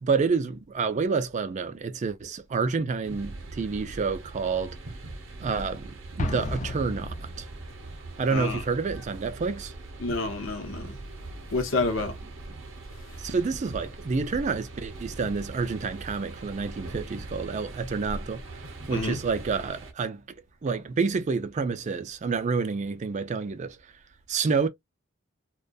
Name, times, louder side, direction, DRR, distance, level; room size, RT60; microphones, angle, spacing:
voice 1, 0.0-4.8 5.4-7.5 8.2-9.7 13.2-18.4 18.9-20.2 20.6-23.8 24.3-24.7, right 4 dB, 35° right, 0.4 m, -28 dB
sound 1, 3.0-19.9, right 2 dB, 65° right, 0.7 m, -41 dB
Explosion, 6.2-7.9, left 2 dB, 35° left, 0.4 m, -34 dB
voice 2, 8.3-8.6 10.0-11.0 11.5-12.2 13.1-13.2 18.9-19.2, left 3 dB, 65° left, 0.8 m, -29 dB
2.3 x 2.1 x 2.5 m
head